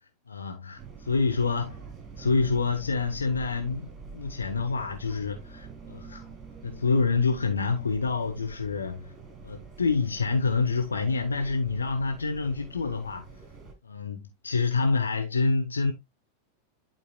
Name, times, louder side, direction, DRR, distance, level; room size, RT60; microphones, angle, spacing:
voice 1, 0.3-1.8 2.2-6.2 6.6-9.0 9.4-13.2 13.8-15.9, left 4 dB, 75° left, 1.1 m, -27 dB
sound 1, 0.8-13.7, right 5 dB, 20° right, 3.7 m, -46 dB
11.5 x 4.5 x 2.3 m
figure-of-eight pair, 90°, 0 cm